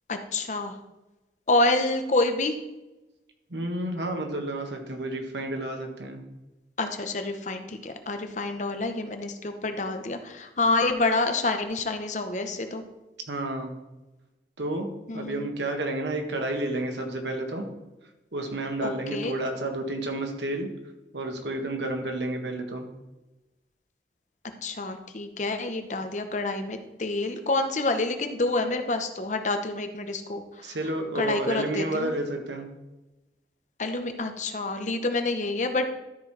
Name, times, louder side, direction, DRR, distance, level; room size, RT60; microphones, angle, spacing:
voice 1, 0.1-0.8 1.5-2.6 6.8-12.8 15.1-15.5 18.8-19.4 24.6-30.8 31.1-32.1 33.8-35.9, left 2 dB, 45° left, 7 dB, 0.9 m, -28 dB
voice 2, 3.5-6.2 13.3-13.7 14.6-14.9 15.1-17.7 18.3-20.7 21.1-22.9 30.6-32.7, right 1 dB, 85° right, 3 dB, 1.6 m, -30 dB
13.0 x 4.6 x 4.8 m, 1.0 s
head